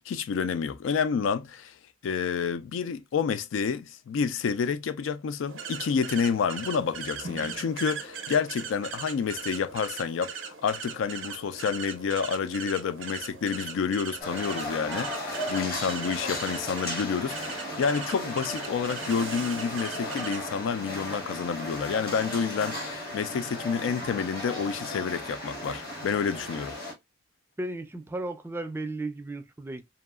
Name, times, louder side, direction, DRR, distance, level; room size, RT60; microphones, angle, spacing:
voice 1, 0.0-1.7 2.0-26.8, left 6 dB, 90° left, 0.3 m, -29 dB
sound 1, 5.5-20.5, right 6 dB, 85° right, 0.5 m, -39 dB
sound 2, 14.2-26.9, left 1 dB, 55° left, 1.6 m, -36 dB
voice 2, 27.6-29.8, right 2 dB, 10° right, 0.3 m, -34 dB
2.7 x 2.3 x 2.3 m
head